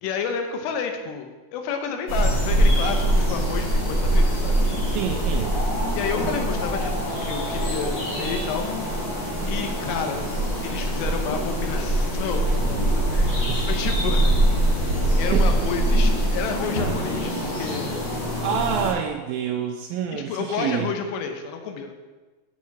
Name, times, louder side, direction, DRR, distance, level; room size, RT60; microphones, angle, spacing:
voice 1, 0.0-4.6 5.9-8.6 9.4-10.3 10.6-14.8 15.2-18.1 20.1-21.9, left 6 dB, 85° left, 6 dB, 3.2 m, -31 dB
sound 1, 2.1-18.9, right 1 dB, 30° left, 2.5 m, -23 dB
voice 2, 4.8-5.6 13.5-13.7 15.3-15.6 18.4-20.9, right 8 dB, 80° right, 2 dB, 2.2 m, -27 dB
7.6 x 7.4 x 7.3 m, 1.2 s
omnidirectional pair, 4.9 m